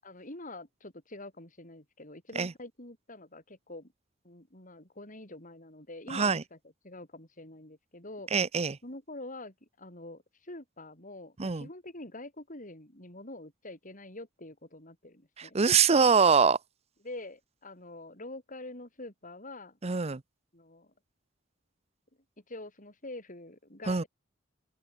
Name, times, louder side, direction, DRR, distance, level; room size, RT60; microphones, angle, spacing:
voice 1, 0.0-3.9 4.2-6.6 6.8-8.3 8.8-15.6 17.0-19.8 20.5-20.9 22.5-24.1, left 2 dB, 45° left, 7.9 m, -46 dB
voice 2, 6.1-6.4 8.3-8.8 11.4-11.7 15.4-16.6 19.8-20.2 23.9-24.0, right 5 dB, 35° right, 0.7 m, -24 dB
open air
head